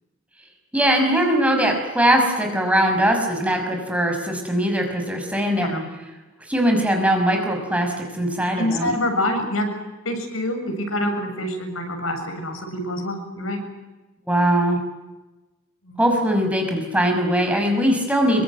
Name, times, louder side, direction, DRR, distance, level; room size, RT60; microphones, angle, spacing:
voice 1, 0.7-5.7 6.5-8.9 14.3-14.8 16.0-18.4, right 1 dB, 5° right, 3 dB, 5.7 m, -20 dB
voice 2, 8.6-9.7 10.1-13.6 15.8-16.0 18.2-18.4, left 1 dB, 70° left, 5 dB, 7.1 m, -26 dB
26.0 x 23.5 x 9.5 m, 1.1 s
head